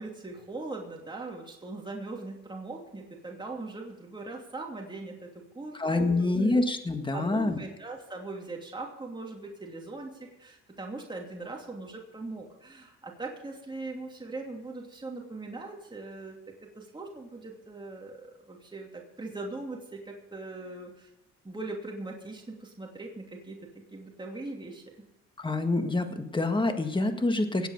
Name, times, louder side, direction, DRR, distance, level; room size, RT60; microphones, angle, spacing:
voice 1, 0.0-6.6 7.1-16.4 16.7-21.1 21.4-23.6 23.9-24.8, right 2 dB, 15° right, 0 dB, 2.7 m, -40 dB
voice 2, 5.7-7.6 25.4-27.7, left 2 dB, 15° left, 7 dB, 1.7 m, -26 dB
18.0 x 8.2 x 6.6 m, 0.92 s
cardioid pair, 90°, 30 cm